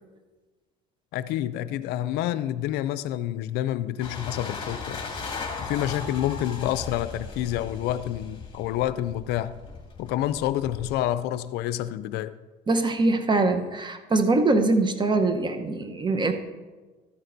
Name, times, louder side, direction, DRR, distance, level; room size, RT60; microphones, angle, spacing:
voice 1, 1.1-5.0 5.6-9.6 10.0-12.3, left 12 dB, 70° left, 0.4 m, -28 dB
sound 1, 4.0-10.9, left 4 dB, 30° left, 2.3 m, -37 dB
voice 2, 12.7-16.3, right 2 dB, 25° right, 1.0 m, -23 dB
13.0 x 11.0 x 2.7 m
supercardioid pair, 90°, 17 cm